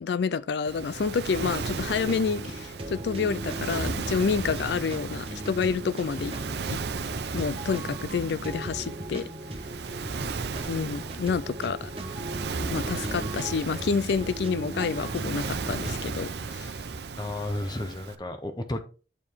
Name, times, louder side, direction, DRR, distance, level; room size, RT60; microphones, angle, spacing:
voice 1, 0.0-6.3 6.7-6.8 7.3-9.3 10.7-11.9 12.5-16.7, left 5 dB, 65° left, 0.3 m, -29 dB
Waves surf, 0.7-18.2, right 4 dB, 65° right, 0.6 m, -35 dB
sound 1, 1.3-16.0, right 1 dB, 30° right, 1.2 m, -38 dB
voice 2, 17.2-18.8, left 1 dB, 25° left, 0.7 m, -32 dB
8.5 x 4.7 x 3.5 m
head